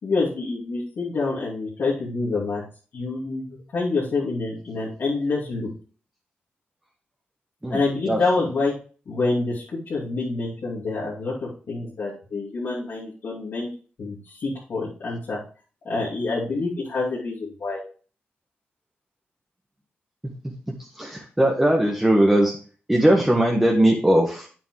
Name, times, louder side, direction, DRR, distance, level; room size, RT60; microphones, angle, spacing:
voice 1, 0.0-2.6 2.9-5.7 7.7-8.7 9.1-13.7 14.0-15.4 15.8-17.8, left 3 dB, 70° left, -7 dB, 2.8 m, -27 dB
voice 2, 20.9-22.5 22.9-24.5, right 1 dB, 10° right, -1 dB, 1.5 m, -19 dB
8.5 x 7.4 x 3.2 m, 0.39 s
cardioid pair, 90°, 4 cm